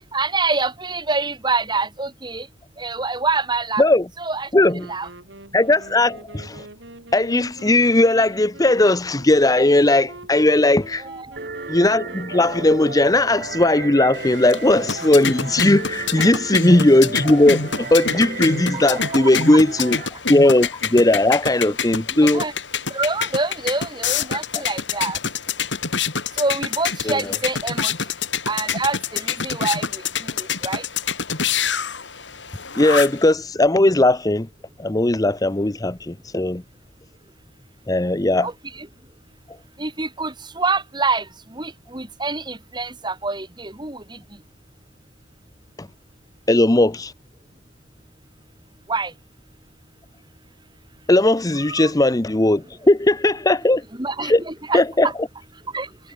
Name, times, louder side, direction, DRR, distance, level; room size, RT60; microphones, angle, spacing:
voice 1, 0.1-2.5 2.8-3.8 4.2-4.5 4.9-5.1 11.0-11.4 16.2-16.3 18.7-19.6 21.6-21.7 22.1-22.5 22.9-25.2 26.4-27.9 28.5-30.8 38.4-38.5 38.8-38.9 39.8-44.2 48.9-49.1 51.7-51.9 54.0-55.1 55.7-55.9, right 3 dB, 25° right, 3.0 m, -26 dB
voice 2, 4.5-4.9 5.5-6.7 7.1-11.1 11.7-20.0 20.3-22.4 27.0-27.3 32.8-34.5 34.8-36.6 37.9-38.5 46.5-47.1 51.1-53.8 54.2-54.4 54.7-55.1, left 2 dB, 20° left, 0.8 m, -17 dB
Wind instrument woodwind instrument, 4.5-16.2, right 2 dB, 75° right, 7.7 m, -43 dB
sound 1, 11.4-20.1, right 4 dB, 50° right, 2.9 m, -34 dB
sound 2, 14.1-33.3, left 6 dB, 70° left, 5.3 m, -27 dB
head